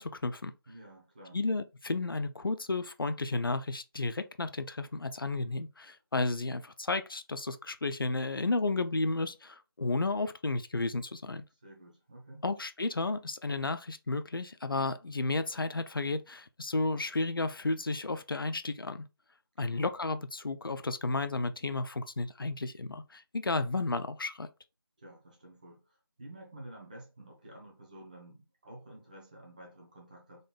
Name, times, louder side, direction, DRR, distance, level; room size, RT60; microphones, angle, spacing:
voice 1, 0.0-0.5 1.3-11.4 12.4-19.1 19.6-24.5, left 3 dB, 65° left, 0.5 m, -32 dB
voice 2, 0.7-1.4 11.5-12.4 19.6-19.9 25.0-30.5, right 1 dB, 20° right, 1.0 m, -51 dB
3.9 x 3.5 x 2.3 m
figure-of-eight pair, 170°, 13 cm